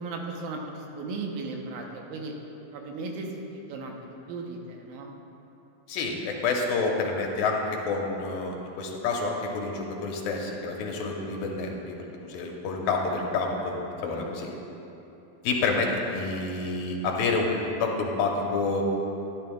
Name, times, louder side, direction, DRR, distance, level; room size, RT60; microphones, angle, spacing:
voice 1, 0.0-2.3 2.7-4.0 4.3-5.1 14.0-14.3, right 3 dB, 85° right, 1 dB, 2.7 m, -36 dB
voice 2, 5.9-12.0 12.3-13.8 14.0-14.6 15.4-18.8, left 3 dB, 85° left, 0 dB, 2.6 m, -28 dB
13.0 x 10.5 x 2.3 m, 3.0 s
omnidirectional pair, 4.1 m